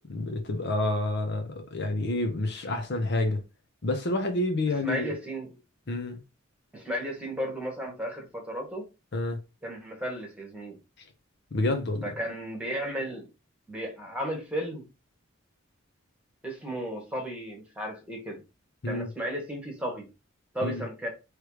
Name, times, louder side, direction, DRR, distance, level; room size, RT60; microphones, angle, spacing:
voice 1, 0.1-3.4 3.8-5.1 5.9-6.2 9.1-9.4 11.5-12.0 18.8-19.1 20.6-20.8, left 2 dB, 55° left, 0.8 m, -28 dB
voice 2, 4.8-5.6 6.7-8.8 9.6-10.7 12.0-13.3 13.7-14.8 16.4-18.4 18.9-20.1 20.5-21.1, equal, 5° right, 1.6 m, -34 dB
3.3 x 3.2 x 4.8 m
head